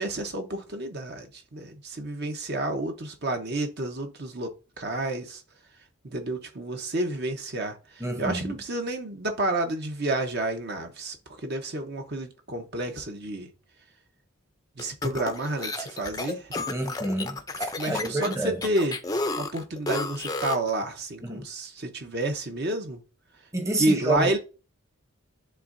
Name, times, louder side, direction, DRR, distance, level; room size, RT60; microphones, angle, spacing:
voice 1, 0.0-4.5 4.8-5.4 6.0-11.2 11.4-13.5 14.8-16.5 17.8-18.9 19.4-23.0 23.8-24.4, right 2 dB, 50° right, 0.9 m, -30 dB
voice 2, 8.0-8.5 16.7-18.6 21.2-21.4 23.5-24.3, right 1 dB, 15° right, 0.9 m, -29 dB
sound 1, 14.8-20.7, left 2 dB, 15° left, 0.5 m, -32 dB
10.5 x 3.6 x 2.6 m
head